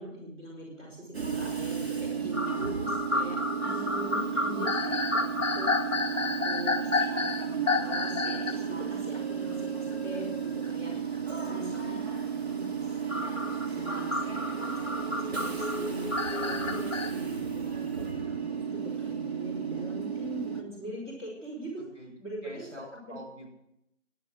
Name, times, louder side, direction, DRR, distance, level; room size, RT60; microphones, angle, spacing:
voice 1, 0.0-5.7 5.9-11.1 11.4-12.0 12.3-13.3 13.7-17.9 18.3-21.8 22.2-22.7 23.1-23.2, equal, 20° right, -6 dB, 4.3 m, -42 dB
Train / Subway metro underground, 1.1-20.6, right 6 dB, 55° right, 2.2 m, -33 dB
sound 1, 2.3-8.6 9.1-9.2 10.6-10.7 13.1-17.1, left 3 dB, 10° left, 0.9 m, -30 dB
voice 2, 21.8-22.1 22.4-23.5, right 1 dB, 70° right, 0 dB, 7.2 m, -46 dB
15.0 x 11.0 x 6.4 m, 0.79 s
figure-of-eight pair, 165°, 37 cm